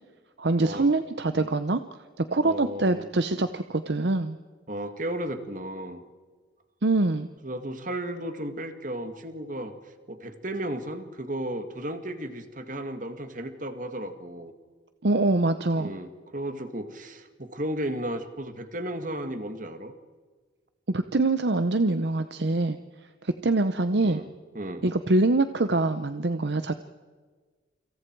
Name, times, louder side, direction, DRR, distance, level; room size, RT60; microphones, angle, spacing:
voice 1, 0.4-1.8 2.2-4.4 6.8-7.3 15.0-15.9 20.9-22.8 23.2-24.2 24.8-26.7, right 2 dB, 60° right, 10 dB, 0.8 m, -24 dB
voice 2, 2.4-3.1 4.7-6.0 7.4-9.7 10.1-14.5 15.8-19.9 24.0-24.3 24.5-24.8, right 1 dB, 45° right, 8 dB, 2.1 m, -34 dB
29.0 x 26.0 x 4.7 m, 1.5 s
head